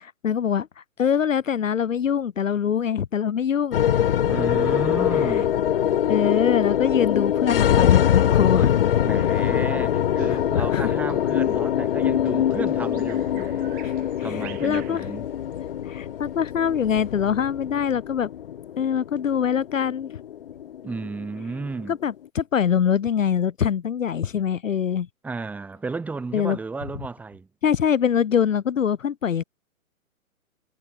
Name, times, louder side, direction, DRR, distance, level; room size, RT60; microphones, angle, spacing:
voice 1, 0.2-0.7 1.0-3.9 5.2-5.4 6.1-8.7 10.5-10.9 13.8-13.9 14.2-15.0 15.9-18.3 18.8-20.1 21.9-25.1 26.3-26.6 27.6-29.4, left 8 dB, 65° left, 0.8 m, -23 dB
sound 1, 3.7-22.1, left 10 dB, 40° left, 0.9 m, -23 dB
voice 2, 4.3-5.6 9.0-13.8 14.2-15.3 20.8-22.0 25.2-27.5, right 4 dB, 5° right, 1.2 m, -33 dB
Bird vocalization bird call bird song, 10.2-15.7, right 17 dB, 20° right, 5.4 m, -49 dB
figure-of-eight pair, 130°, 43 cm